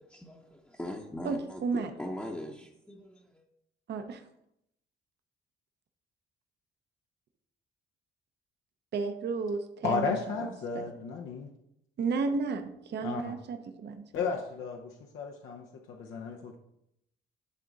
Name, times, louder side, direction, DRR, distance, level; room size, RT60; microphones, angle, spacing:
voice 1, 0.1-3.4, left 1 dB, 5° left, -1 dB, 0.8 m, -41 dB
voice 2, 1.2-1.9 3.9-4.3 8.9-10.1 10.7-10.8 12.0-14.1, right 4 dB, 60° right, 7 dB, 0.8 m, -32 dB
voice 3, 9.8-11.5 13.0-13.3 14.1-16.6, left 5 dB, 85° left, 1 dB, 0.8 m, -34 dB
10.5 x 3.7 x 4.0 m, 0.79 s
cardioid pair, 90°, 20 cm